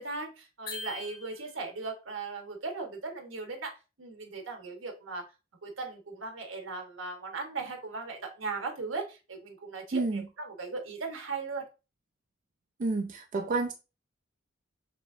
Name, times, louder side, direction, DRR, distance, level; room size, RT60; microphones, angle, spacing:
voice 1, 0.0-3.7 4.0-5.2 5.6-11.6, right 4 dB, 75° right, 1.2 m, -38 dB
sound 1, 0.7-1.8, left 3 dB, 55° left, 1.9 m, -42 dB
voice 2, 9.9-10.3 12.8-13.7, right 3 dB, 40° right, 0.4 m, -29 dB
6.2 x 3.0 x 2.6 m
head